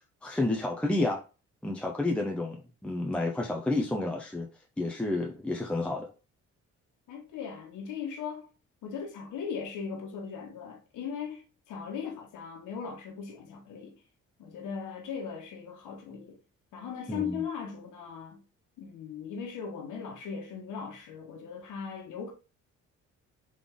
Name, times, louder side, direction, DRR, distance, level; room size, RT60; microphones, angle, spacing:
voice 1, 0.2-1.2 1.6-4.5 4.8-6.1 17.1-17.4, left 2 dB, 5° left, 0.6 m, -30 dB
voice 2, 7.1-8.5 8.8-14.0 14.4-16.4 16.7-18.4 18.8-22.3, left 6 dB, 85° left, 1.2 m, -38 dB
3.8 x 3.4 x 3.7 m
cardioid pair, 90°, 30 cm